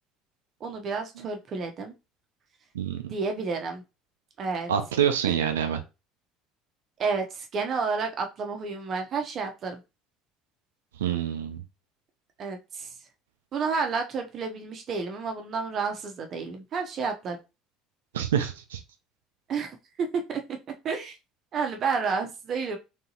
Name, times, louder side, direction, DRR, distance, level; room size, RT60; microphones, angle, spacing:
voice 1, 0.6-1.9 3.1-3.8 4.4-4.7 7.0-9.8 12.4-12.9 13.5-17.4 19.5-20.6 20.8-21.2 21.5-22.8, right 5 dB, 45° right, 4 dB, 1.0 m, -30 dB
voice 2, 2.7-3.1 4.7-5.8 11.0-11.6 18.1-18.8, right 9 dB, 75° right, 7 dB, 0.7 m, -26 dB
3.9 x 3.6 x 2.9 m, 0.27 s
figure-of-eight pair, 60°, 0 cm